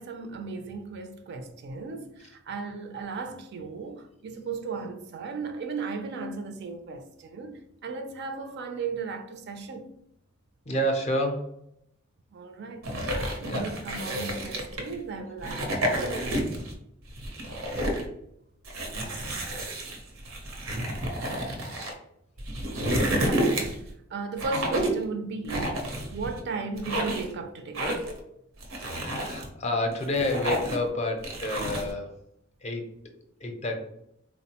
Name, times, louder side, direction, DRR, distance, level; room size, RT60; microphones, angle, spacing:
voice 1, 0.0-9.9 12.3-12.9 13.4-16.5 23.3-23.7 24.1-27.9, right 4 dB, 55° right, 0.4 m, -36 dB
voice 2, 10.7-11.5 13.4-13.7 15.7-16.0 28.8-32.1 32.6-32.8 33.4-33.8, left 1 dB, 35° left, 0.5 m, -29 dB
sound 1, 12.8-14.9 15.4-16.7 17.1-18.1 18.6-21.9 22.4-23.9 24.4-25.0 25.5-26.4 26.8-27.3 27.7-28.2 28.6-29.5 29.9-30.9 31.2-31.9, right 1 dB, 90° right, 0.7 m, -30 dB
3.5 x 2.0 x 2.8 m
head